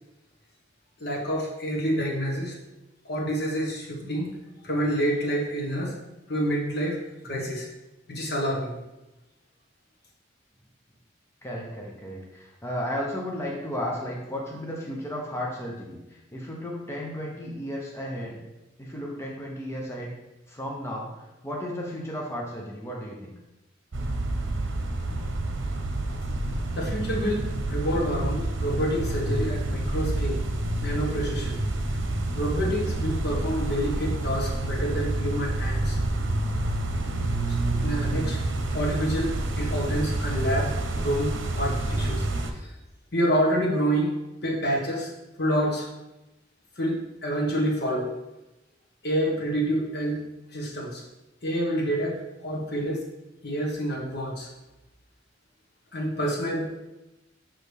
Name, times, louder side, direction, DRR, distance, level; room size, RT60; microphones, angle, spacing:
voice 1, 1.0-2.6 3.0-4.3 4.6-5.9 6.3-7.0 7.2-7.7 8.1-8.7 26.7-30.4 30.8-31.6 32.3-36.0 37.4-37.6 37.8-42.2 42.5-42.7 43.1-45.1 45.4-45.9 46.8-48.1 49.0-50.2 50.5-51.0 51.4-53.0 53.4-54.5 55.9-56.9, equal, 60° left, -2 dB, 1.4 m, -28 dB
voice 2, 11.4-18.4 18.8-20.1 20.5-23.3, equal, 15° left, -2 dB, 0.8 m, -34 dB
sound 1, 23.9-42.5, right 2 dB, 80° right, 0.8 m, -28 dB
6.4 x 6.0 x 3.5 m, 1.0 s
head